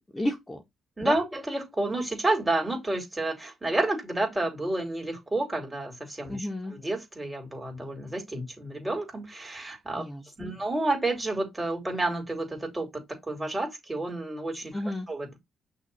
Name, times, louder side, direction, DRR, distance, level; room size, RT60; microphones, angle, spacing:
voice 1, 0.1-0.6 1.0-1.2 6.3-6.7 10.0-10.5 14.7-15.1, left 1 dB, 15° left, 1.4 m, -32 dB
voice 2, 1.0-10.0 10.4-14.7 15.1-15.4, right 2 dB, 15° right, 3.1 m, -30 dB
6.1 x 2.9 x 5.5 m
cardioid pair, 90°, 0 cm